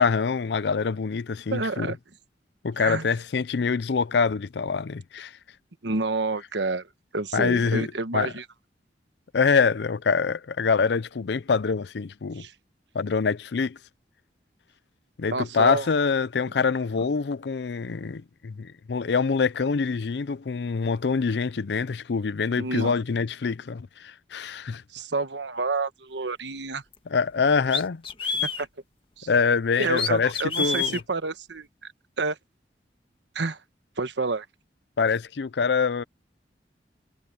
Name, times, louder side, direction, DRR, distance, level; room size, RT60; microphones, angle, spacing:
voice 1, 0.0-1.9 2.6-5.3 7.3-8.3 9.3-12.5 12.9-13.8 15.2-24.8 27.1-28.0 29.3-31.0 35.0-36.0, left 5 dB, 70° left, 0.5 m, -25 dB
voice 2, 1.5-2.0 2.8-3.1 5.8-6.9 7.1-8.4 12.3-12.5 15.3-15.9 22.6-22.9 24.9-26.8 28.3-28.7 29.2-29.3 29.8-31.9 32.2-32.4 33.3-33.6 34.0-34.5, right 3 dB, 85° right, 1.2 m, -29 dB
sound 1, 26.9-27.0 27.7-28.6 29.8-31.0, left 5 dB, 30° left, 1.7 m, -28 dB
head